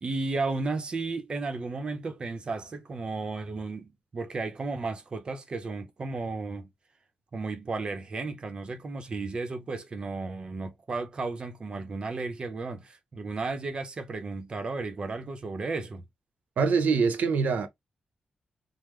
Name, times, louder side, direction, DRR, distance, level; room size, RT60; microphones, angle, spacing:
voice 1, 0.0-6.7 7.3-16.0, right 3 dB, 35° right, 0.6 m, -34 dB
voice 2, 16.6-17.7, right 5 dB, 70° right, 0.6 m, -24 dB
3.5 x 2.0 x 3.0 m
wide cardioid pair, 180°, 3 cm